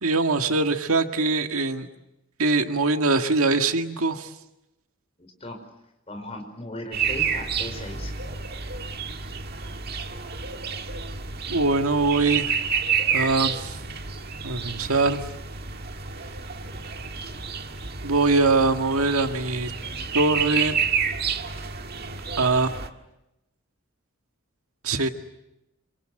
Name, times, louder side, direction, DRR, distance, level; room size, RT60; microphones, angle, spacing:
voice 1, 0.0-1.9 2.4-4.3 11.5-12.6 13.1-13.8 14.4-15.2 18.0-19.7 20.1-20.8 22.4-22.8 24.8-25.1, right 3 dB, 80° right, 6 dB, 1.9 m, -22 dB
voice 2, 5.2-5.6 6.1-8.1, left 1 dB, 25° left, 5 dB, 5.0 m, -37 dB
sound 1, 6.9-22.9, right 6 dB, 45° right, 1.8 m, -30 dB
26.5 x 26.0 x 7.9 m, 0.89 s
head